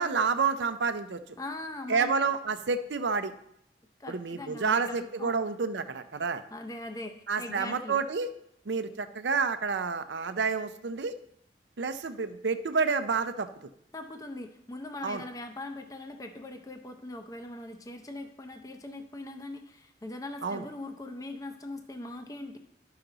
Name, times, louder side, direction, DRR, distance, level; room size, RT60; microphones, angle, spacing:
voice 1, 0.0-1.2 1.9-3.3 4.1-6.4 7.3-8.3 8.7-11.1 11.8-13.5 15.0-15.2 20.4-20.6, right 5 dB, 90° right, 10 dB, 0.6 m, -29 dB
voice 2, 1.4-2.3 4.0-5.4 6.5-8.0 13.9-22.6, left 2 dB, 20° left, 6 dB, 0.6 m, -41 dB
11.5 x 5.8 x 3.9 m, 0.74 s
head